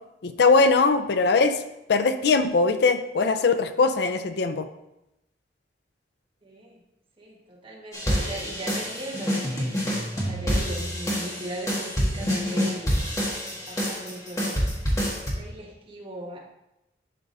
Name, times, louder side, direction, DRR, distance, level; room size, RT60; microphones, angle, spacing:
voice 1, 0.2-1.6 1.9-4.7, left 4 dB, 65° left, 9 dB, 0.4 m, -21 dB
voice 2, 6.4-6.8 7.2-13.0 13.5-14.7 15.2-16.4, right 1 dB, 30° right, -3 dB, 1.4 m, -39 dB
sound 1, 7.9-15.3, equal, 20° left, 1.4 m, -27 dB
11.0 x 4.9 x 2.6 m, 0.88 s
head